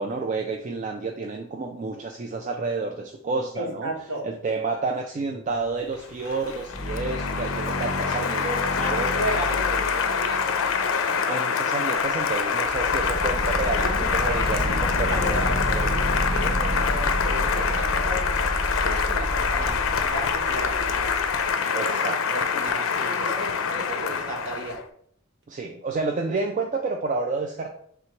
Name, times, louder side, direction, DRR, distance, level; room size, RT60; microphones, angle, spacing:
voice 1, 0.0-3.9 4.2-8.5 8.9-9.1 11.3-15.4 15.7-15.9 21.7-22.2 25.5-27.7, right 3 dB, 40° right, 2 dB, 0.3 m, -30 dB
voice 2, 3.5-4.2 8.1-11.4 13.8-18.3 18.8-24.8, right 1 dB, 70° right, -1 dB, 1.3 m, -34 dB
Applause, 5.9-24.8, left 6 dB, 85° left, 0.4 m, -25 dB
sound 1, 6.4-10.9 11.9-12.0 12.4-21.5, equal, 45° left, 1.1 m, -30 dB
3.4 x 2.9 x 4.5 m, 0.65 s
head